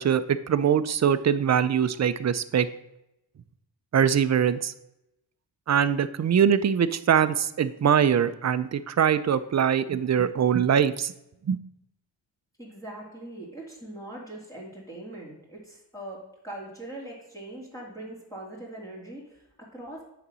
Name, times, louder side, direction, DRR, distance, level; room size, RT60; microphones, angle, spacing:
voice 1, 0.0-2.7 3.9-4.7 5.7-11.1 11.5-11.6, right 8 dB, 40° right, 13 dB, 0.5 m, -23 dB
voice 2, 12.6-16.2 16.4-20.0, right 1 dB, 5° left, -5 dB, 2.5 m, -41 dB
8.6 x 4.1 x 6.1 m, 0.86 s
cardioid pair, 95°, 45 cm